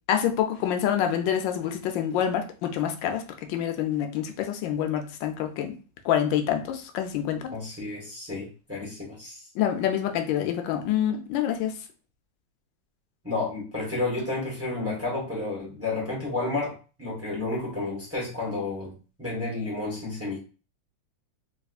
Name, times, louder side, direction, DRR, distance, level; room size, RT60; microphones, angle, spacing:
voice 1, 0.1-3.2 3.5-5.8 6.0-7.5 9.5-11.7, left 10 dB, 85° left, 1.3 m, -26 dB
voice 2, 7.5-9.4 13.2-20.4, left 3 dB, 10° right, 1.3 m, -31 dB
3.3 x 3.3 x 2.4 m
omnidirectional pair, 2.0 m